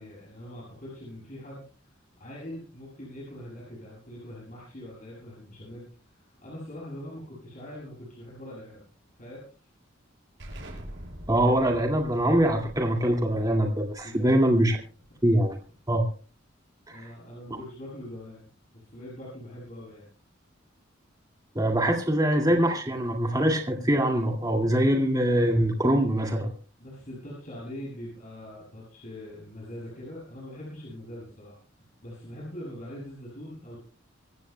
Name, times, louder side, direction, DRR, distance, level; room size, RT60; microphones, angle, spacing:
voice 1, 0.0-8.8 9.2-9.4 14.0-14.3 16.9-20.1 26.8-33.8, left 1 dB, 40° left, -6 dB, 7.6 m, -42 dB
Explosion, 10.4-15.8, equal, 65° right, 6.9 m, -45 dB
voice 2, 11.3-14.8 15.2-15.6 15.9-16.0 16.9-17.1 21.5-26.5, right 1 dB, 20° right, 2 dB, 2.2 m, -23 dB
25.5 x 15.0 x 2.3 m, 0.39 s
head